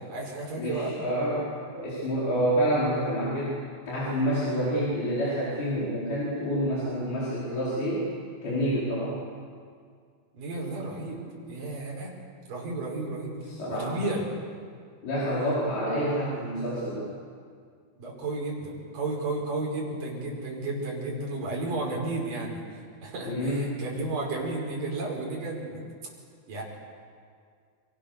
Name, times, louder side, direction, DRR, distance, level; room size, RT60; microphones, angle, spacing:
voice 1, 0.0-0.9 10.3-11.2 11.5-12.1 12.5-14.3 18.0-22.6 23.0-25.8 26.5-26.6, right 2 dB, 55° right, -2 dB, 7.1 m, -33 dB
voice 2, 0.5-8.1 8.4-9.2 13.5-14.0 15.0-17.1 23.2-23.8, equal, 70° left, -8 dB, 6.9 m, -28 dB
29.5 x 25.5 x 6.9 m, 2.1 s
omnidirectional pair, 4.6 m